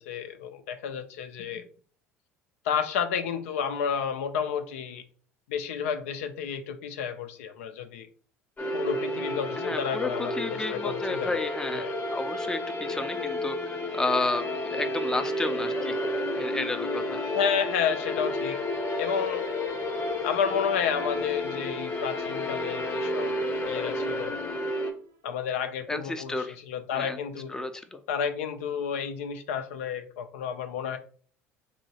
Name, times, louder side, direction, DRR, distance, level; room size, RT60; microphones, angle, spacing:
voice 1, 0.1-1.7 2.6-5.0 5.5-8.1 8.7-11.4 11.7-12.0 17.3-18.6 19.0-19.5 20.2-23.4 23.7-24.4 25.2-27.6 28.1-31.0, left 7 dB, 75° left, 7 dB, 0.4 m, -31 dB
sound 1, 8.6-24.9, left 1 dB, 25° left, 0.8 m, -31 dB
voice 2, 9.6-16.0 16.3-17.2 25.9-26.6 26.9-27.2 27.5-28.0, left 2 dB, 10° left, 8 dB, 0.4 m, -32 dB
sound 2, 12.5-25.3, right 1 dB, 75° right, 0.8 m, -49 dB
2.9 x 2.7 x 2.8 m, 0.43 s
hypercardioid pair, 70°, 7 cm